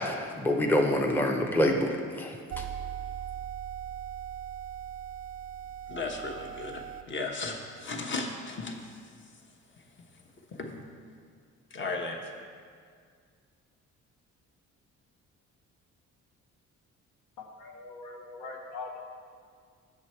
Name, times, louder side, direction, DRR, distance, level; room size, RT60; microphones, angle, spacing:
voice 1, 0.0-2.6, left 1 dB, 5° left, 1 dB, 0.6 m, -27 dB
sound 1, 2.5-7.0, right 9 dB, 45° right, 0.4 m, -39 dB
voice 2, 5.9-9.0 10.5-10.8 11.7-12.2, left 3 dB, 40° left, 2 dB, 1.1 m, -35 dB
voice 3, 17.5-19.0, left 3 dB, 80° left, 0 dB, 1.1 m, -42 dB
7.2 x 6.4 x 4.4 m, 2.1 s
cardioid pair, 90°, 30 cm